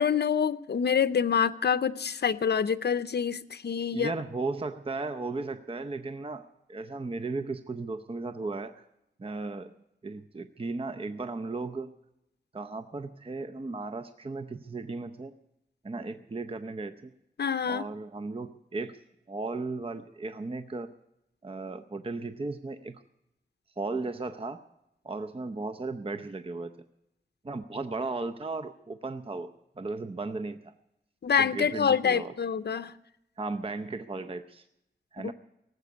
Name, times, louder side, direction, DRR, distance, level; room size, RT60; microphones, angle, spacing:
voice 1, 0.0-4.1 17.4-17.9 31.2-32.9 35.2-35.3, left 7 dB, 70° left, 0.6 m, -26 dB
voice 2, 3.9-8.8 9.2-9.7 10.0-11.9 12.5-15.3 15.8-17.1 17.7-18.9 19.3-20.9 21.4-23.0 23.8-24.6 25.0-26.7 27.4-29.5 29.8-30.7 31.4-32.3 33.4-34.6 35.1-35.3, right 3 dB, 30° right, 0.7 m, -35 dB
18.5 x 8.1 x 9.6 m
wide cardioid pair, 85°, 18 cm